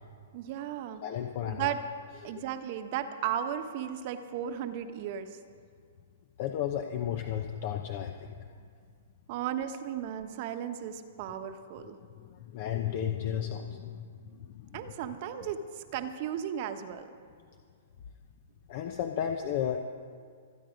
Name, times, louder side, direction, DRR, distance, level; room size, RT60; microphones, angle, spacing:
voice 1, 0.3-1.0 1.5-1.8 2.2-5.4 9.3-12.0 14.7-17.1, right 9 dB, 45° right, 8 dB, 1.1 m, -35 dB
voice 2, 1.0-1.7 6.4-8.3 12.2-14.1 14.4-14.8 18.7-19.8, left 9 dB, 50° left, 5 dB, 0.9 m, -33 dB
25.5 x 9.2 x 5.2 m, 2.1 s
hypercardioid pair, 130°, 0 cm